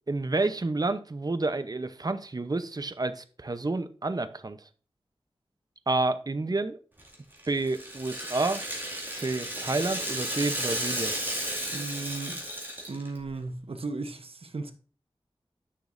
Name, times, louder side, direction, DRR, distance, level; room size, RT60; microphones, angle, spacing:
voice 1, 0.1-4.6 5.9-6.8 7.5-8.6 9.1-11.1, right 3 dB, 40° right, 0.7 m, -29 dB
Rattle (instrument), 7.0-13.2, right 1 dB, 20° right, 2.2 m, -33 dB
voice 2, 11.7-12.4 12.9-14.7, right 3 dB, 75° right, 0.9 m, -36 dB
10.0 x 6.1 x 2.6 m
wide cardioid pair, 70°, 10 cm